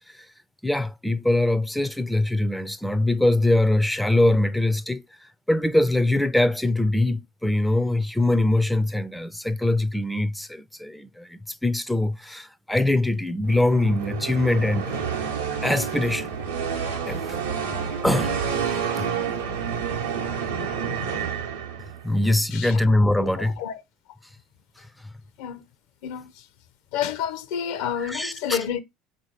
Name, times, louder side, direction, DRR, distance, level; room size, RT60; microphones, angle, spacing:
voice 1, 0.6-15.1 15.6-16.3 17.1-17.4 18.0-18.4 19.0-19.1 22.0-23.6 24.8-25.1 28.0-28.6, left 1 dB, 5° left, 0.3 m, -23 dB
sound 1, 13.4-22.1, right 6 dB, 80° right, 0.7 m, -29 dB
voice 2, 22.5-23.8 25.4-25.6 26.0-26.5 26.9-28.8, left 9 dB, 65° left, 0.5 m, -30 dB
3.7 x 2.6 x 4.4 m
figure-of-eight pair, 65°, 0 cm